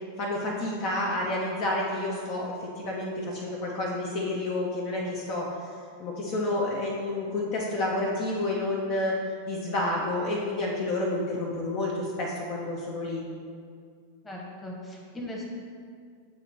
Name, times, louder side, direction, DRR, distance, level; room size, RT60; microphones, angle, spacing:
voice 1, 0.2-5.5 6.0-9.1 9.5-13.2, left 2 dB, 40° left, -3 dB, 0.7 m, -29 dB
voice 2, 14.2-15.4, left 1 dB, 15° left, -2 dB, 1.2 m, -38 dB
7.9 x 3.0 x 4.1 m, 2.1 s
figure-of-eight pair, 90°, 0 cm